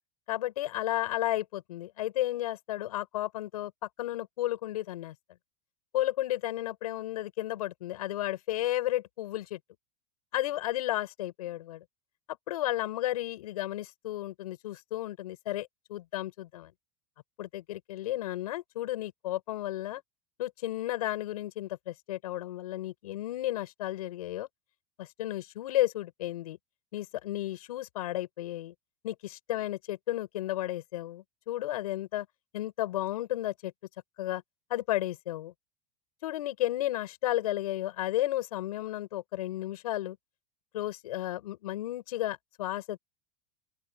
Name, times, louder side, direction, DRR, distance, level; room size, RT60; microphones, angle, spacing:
voice 1, 0.3-5.1 5.9-9.6 10.3-11.8 12.5-16.7 17.4-20.0 20.4-24.5 25.0-26.6 26.9-28.7 29.0-32.3 32.5-33.7 34.2-34.4 34.7-35.5 36.2-40.2 40.7-43.0, left 14 dB, 85° left, 6.7 m, -33 dB
open air
supercardioid pair, 125°, 19 cm